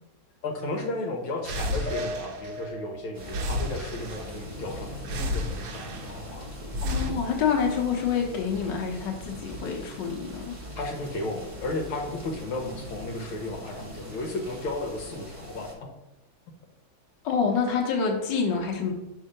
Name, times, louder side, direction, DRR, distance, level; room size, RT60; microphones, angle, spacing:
voice 1, 0.4-6.5 7.1-7.2 10.8-15.7, left 2 dB, 80° left, 1 dB, 1.7 m, -34 dB
sound 1, 1.5-2.9 3.2-4.5 5.0-6.3 6.7-7.1, left 1 dB, 70° right, 1.0 m, -32 dB
sound 2, 1.9-5.3 5.7-6.7, left 1 dB, 35° left, 0.8 m, -42 dB
sound 3, 3.1-15.8, equal, 25° right, 0.7 m, -41 dB
voice 2, 6.8-10.5 17.2-18.9, left 6 dB, 65° left, 0 dB, 1.6 m, -27 dB
5.5 x 3.7 x 5.0 m, 0.94 s
omnidirectional pair, 2.3 m